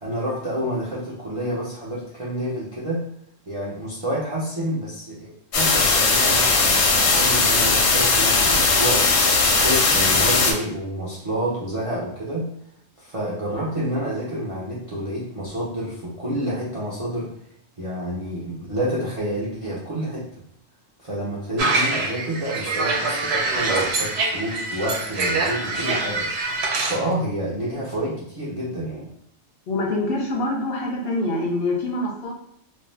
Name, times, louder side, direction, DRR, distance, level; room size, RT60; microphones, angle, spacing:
voice 1, 0.0-3.0 3.5-12.5 13.0-17.3 17.8-20.3 21.0-29.1, right 1 dB, 50° right, -6 dB, 0.4 m, -29 dB
sound 1, 5.5-10.5, left 3 dB, 80° left, 1.0 m, -18 dB
sound 2, 21.6-27.0, right 3 dB, 65° right, 0.8 m, -24 dB
voice 2, 29.7-32.3, left 2 dB, 60° left, -2 dB, 0.7 m, -25 dB
2.6 x 2.1 x 3.1 m, 0.71 s
omnidirectional pair, 1.3 m